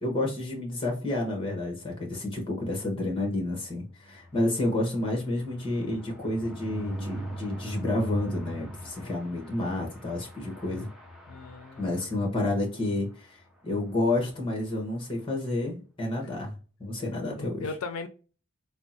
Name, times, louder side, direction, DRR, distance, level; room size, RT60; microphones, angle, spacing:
voice 1, 0.0-10.9 11.8-13.4 13.6-16.5 16.8-17.6, left 2 dB, 25° left, 1.0 m, -30 dB
sound 1, 3.8-12.6 13.0-13.2 13.5-13.6 13.8-14.1, right 1 dB, ahead, 0.5 m, -40 dB
voice 2, 11.3-12.1 17.4-18.1, left 4 dB, 85° left, 0.4 m, -37 dB
3.5 x 2.1 x 2.6 m
head